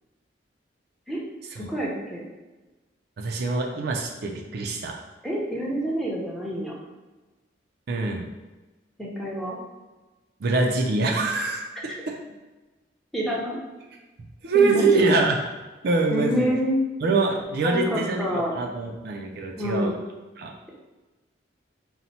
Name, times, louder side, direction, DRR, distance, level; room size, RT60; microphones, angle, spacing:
voice 1, 1.6-2.2 5.2-6.7 9.0-9.6 13.1-13.6 14.5-15.1 16.1-16.7 17.6-18.5 19.6-19.9, equal, ahead, -4 dB, 0.6 m, -27 dB
voice 2, 3.2-4.9 7.9-8.3 10.4-12.1 14.4-15.4 15.8-16.5 17.0-19.9 20.4-20.5, right 3 dB, 55° right, 1 dB, 0.4 m, -24 dB
4.1 x 2.1 x 4.1 m, 1.2 s
head